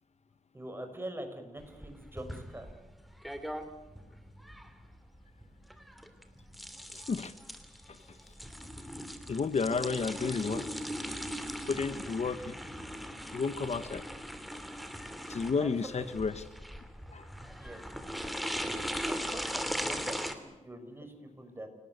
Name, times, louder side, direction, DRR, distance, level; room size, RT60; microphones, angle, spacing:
voice 1, 0.5-2.7 15.6-16.1 17.4-17.8 18.5-18.7 19.1-21.7, right 1 dB, 15° right, 6 dB, 6.2 m, -44 dB
sound 1, 1.6-20.3, equal, ahead, 3.0 m, -39 dB
voice 2, 6.9-7.4 7.9-8.2 9.3-10.7 11.7-12.6 13.3-14.1 15.3-16.4 17.1-17.3, left 5 dB, 60° left, 13 dB, 1.2 m, -32 dB
29.0 x 19.0 x 8.1 m, 1.1 s
wide cardioid pair, 85°, 13 cm